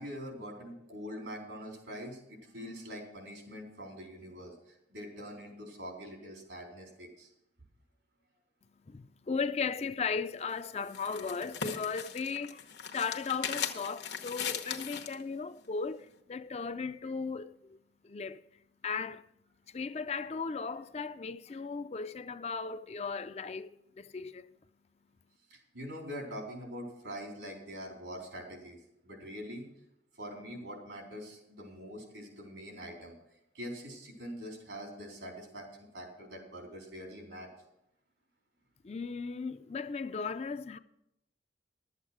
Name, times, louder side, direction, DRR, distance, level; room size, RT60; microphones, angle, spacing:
voice 1, 0.0-7.3 25.5-29.7 30.1-33.1 33.5-37.5, equal, 85° right, 3.9 m, -44 dB
voice 2, 8.9-18.4 18.8-19.3 19.7-24.5 38.8-40.8, left 5 dB, 35° left, 0.4 m, -36 dB
sound 1, 10.4-15.2, left 7 dB, 80° left, 1.1 m, -39 dB
12.0 x 8.2 x 6.0 m
head